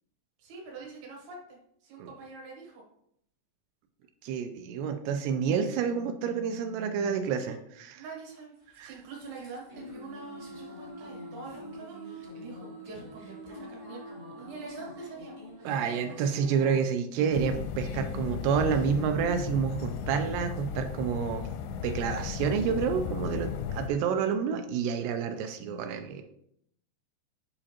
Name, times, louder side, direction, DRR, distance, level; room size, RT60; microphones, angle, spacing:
voice 1, 0.4-2.8 7.2-7.6 7.9-14.0 14.3-15.3, right 4 dB, 65° right, -2 dB, 3.0 m, -45 dB
voice 2, 4.2-8.0 8.8-8.9 15.6-21.5 21.8-26.2, right 7 dB, 85° right, 7 dB, 2.5 m, -29 dB
sound 1, 8.6-16.8, equal, 40° right, 0.6 m, -45 dB
sound 2, 17.3-23.9, left 7 dB, 85° left, 2.4 m, -35 dB
8.5 x 4.9 x 2.9 m, 0.73 s
omnidirectional pair, 5.1 m